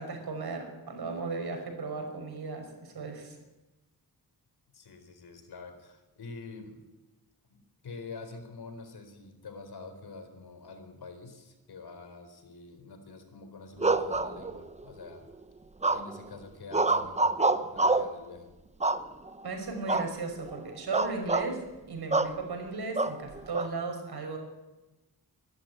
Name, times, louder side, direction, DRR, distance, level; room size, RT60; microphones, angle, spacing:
voice 1, 0.0-3.4 19.4-24.4, right 4 dB, 85° right, 4 dB, 5.6 m, -36 dB
voice 2, 4.7-6.8 7.5-15.3 15.9-18.6, left 3 dB, 85° left, 8 dB, 4.1 m, -46 dB
sound 1, 13.8-14.8 15.8-16.3 16.7-18.2 18.8-19.4 19.9-20.1 20.4-20.6 20.9-21.5 22.1-22.4 23.0-23.7, right 3 dB, 20° right, 0.9 m, -27 dB
24.0 x 13.0 x 9.4 m, 1.1 s
wide cardioid pair, 105°, 37 cm